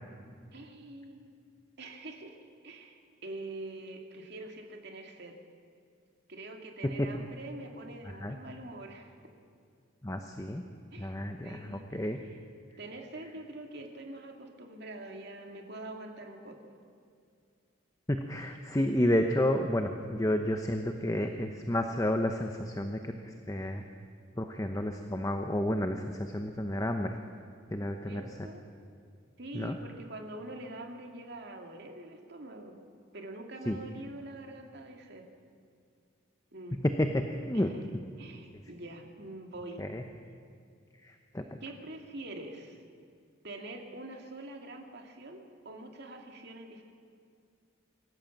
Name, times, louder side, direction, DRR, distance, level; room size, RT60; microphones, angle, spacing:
voice 1, 0.5-1.2 1.8-5.4 6.3-9.2 10.9-11.2 11.4-12.4 12.8-16.7 18.8-18.9 28.1-28.7 29.4-32.8 33.1-35.2 36.5-36.8 37.5-37.8 38.2-39.9 41.6-42.8 43.4-46.8, right 2 dB, 55° right, 3 dB, 2.4 m, -45 dB
voice 2, 10.0-10.6 11.0-12.2 18.1-23.8 24.4-27.1 27.7-28.2 29.5-29.8 33.7-33.8 36.7-37.7 39.8-40.0 41.0-41.4, left 1 dB, 15° left, 5 dB, 0.9 m, -31 dB
26.0 x 14.5 x 7.3 m, 2.3 s
head